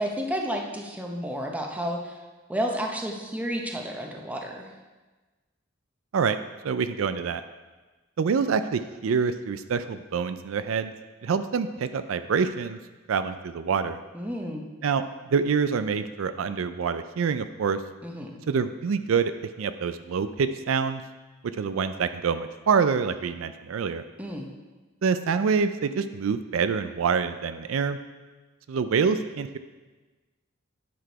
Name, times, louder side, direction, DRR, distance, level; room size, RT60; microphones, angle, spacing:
voice 1, 0.0-2.2 2.5-4.7 14.1-14.7 18.0-18.4 24.2-24.5, equal, 5° right, 1 dB, 0.9 m, -31 dB
voice 2, 6.6-7.4 8.2-10.9 11.2-12.8 13.1-14.0 14.8-15.0 15.3-17.8 18.5-21.0 21.6-24.0 25.0-28.0 28.7-29.6, right 6 dB, 80° right, 11 dB, 0.4 m, -26 dB
9.4 x 6.1 x 4.6 m, 1.2 s
head